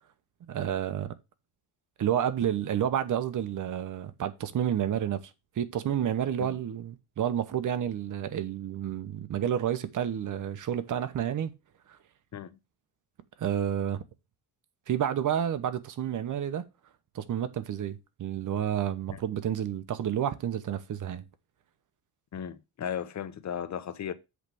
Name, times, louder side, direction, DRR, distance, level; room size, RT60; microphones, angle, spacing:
voice 1, 0.5-1.1 2.0-5.2 5.6-11.5 13.4-14.0 14.9-16.6 17.1-21.2, right 9 dB, 45° right, 1.0 m, -30 dB
voice 2, 22.3-24.1, left 8 dB, 40° left, 0.9 m, -36 dB
8.2 x 3.3 x 6.2 m
cardioid pair, 120°, 43 cm